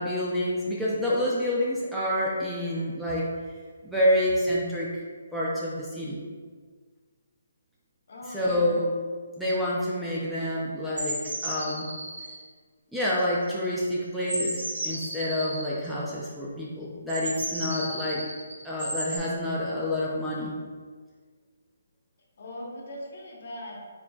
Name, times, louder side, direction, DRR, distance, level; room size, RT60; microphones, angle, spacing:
voice 1, 0.0-3.3 3.8-4.9 5.3-6.2 8.3-8.9 9.4-11.9 12.9-18.3 18.6-20.6, left 1 dB, ahead, -8 dB, 0.6 m, -28 dB
voice 2, 8.1-8.8 22.4-23.8, left 1 dB, 60° left, -3 dB, 1.0 m, -40 dB
sound 1, 11.0-12.4 13.2-13.8 14.2-15.7 17.1-19.2, right 1 dB, 85° right, 1.1 m, -33 dB
4.4 x 3.7 x 2.3 m, 1.5 s
hypercardioid pair, 150°, 0 cm